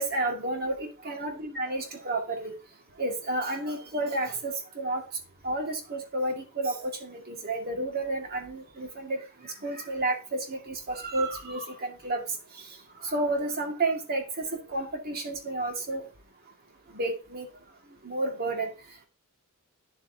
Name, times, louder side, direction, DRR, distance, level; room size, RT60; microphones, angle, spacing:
voice 1, 0.0-2.5 3.0-5.0 5.4-12.2 12.6-12.8 13.0-16.1 16.9-17.5 18.0-18.7, right 2 dB, 45° right, 3 dB, 2.0 m, -31 dB
9.3 x 7.6 x 2.8 m, 0.32 s
head